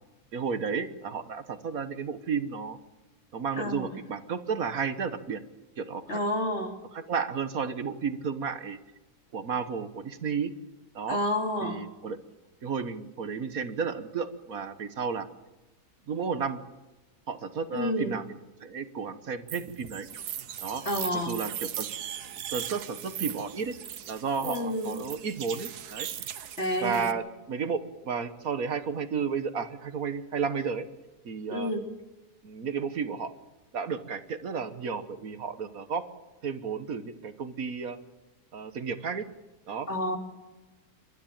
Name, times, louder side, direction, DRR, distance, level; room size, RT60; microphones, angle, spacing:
voice 1, 0.3-2.8 3.3-5.4 5.8-6.2 6.9-8.8 9.3-10.5 10.9-11.2 11.6-12.2 12.6-15.3 16.1-16.6 17.3-20.1 20.6-20.8 21.1-21.9 22.5-23.7 24.1-26.1 26.8-30.9 31.2-31.7 32.4-33.3 33.7-36.1 36.4-38.0 38.5-39.3 39.7-39.9, right 6 dB, 65° right, 11 dB, 1.7 m, -32 dB
voice 2, 3.6-3.9 6.1-6.8 11.1-11.8 17.7-18.1 20.9-21.4 24.4-25.0 26.6-27.1 31.5-31.8 39.9-40.2, left 1 dB, 45° left, 4 dB, 2.8 m, -29 dB
sound 1, 19.5-27.1, right 10 dB, 85° right, 1.5 m, -39 dB
28.0 x 13.0 x 8.8 m, 1.1 s
omnidirectional pair, 1.6 m